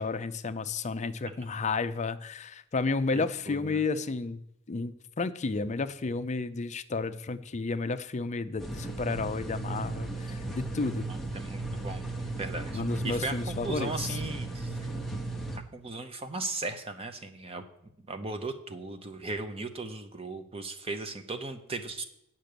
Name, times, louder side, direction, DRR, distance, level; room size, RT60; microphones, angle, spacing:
voice 1, 0.0-4.4 4.7-11.1 12.7-14.2, left 4 dB, 35° left, 11 dB, 0.4 m, -32 dB
voice 2, 3.1-3.8 11.1-13.4 13.6-14.9 15.5-17.6 18.1-22.1, right 3 dB, 25° right, 8 dB, 0.8 m, -37 dB
sound 1, 8.6-15.6, right 2 dB, ahead, 0.8 m, -36 dB
9.1 x 5.9 x 6.7 m, 0.80 s
head